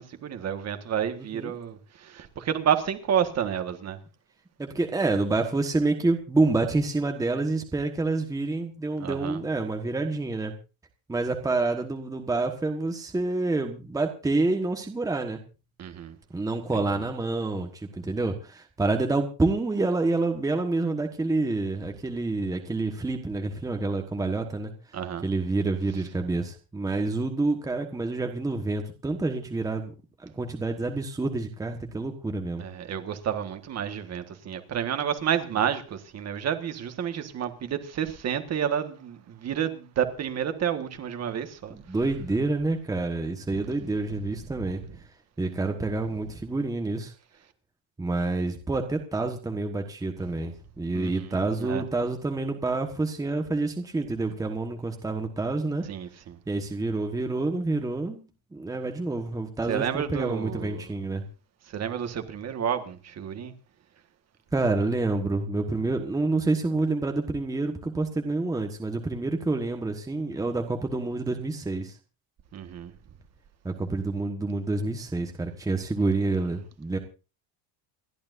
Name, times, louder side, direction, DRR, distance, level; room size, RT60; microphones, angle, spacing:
voice 1, 0.0-4.0 9.0-9.4 15.8-16.1 24.9-25.2 32.6-41.8 50.9-51.2 51.6-51.8 55.9-56.4 59.7-60.8 61.7-63.5 72.5-72.9, right 8 dB, 35° right, 1.6 m, -30 dB
voice 2, 1.2-1.6 4.6-10.5 11.1-15.4 16.3-24.7 25.2-29.9 30.2-32.6 41.7-44.8 45.4-47.1 48.0-55.9 56.5-61.2 64.5-72.0 73.6-77.0, right 3 dB, 5° right, 1.3 m, -28 dB
28.5 x 11.5 x 2.6 m
cardioid pair, 180°, 46 cm